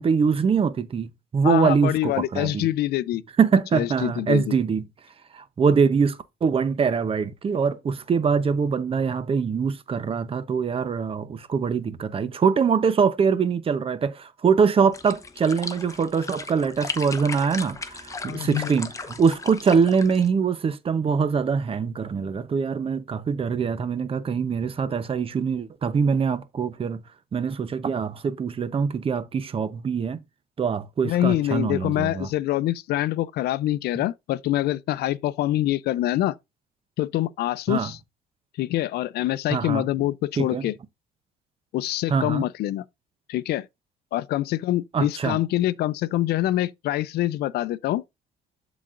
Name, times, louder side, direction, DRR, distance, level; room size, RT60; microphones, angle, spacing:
voice 1, 0.0-2.7 3.4-4.8 5.3-27.0 27.3-30.2 30.6-32.3 37.7-37.9 39.5-39.8 40.4-40.7 42.1-42.4 44.9-45.4, right 6 dB, 35° right, 0.8 m, -23 dB
voice 2, 1.4-3.2 3.7-4.6 18.3-18.7 31.0-36.4 37.0-38.0 38.6-40.7 41.7-42.9 43.3-43.7 44.1-48.0, left 14 dB, 70° left, 0.5 m, -25 dB
sound 1, 14.9-20.3, left 4 dB, 20° left, 0.8 m, -36 dB
12.0 x 4.1 x 2.5 m
cardioid pair, 110°, 17 cm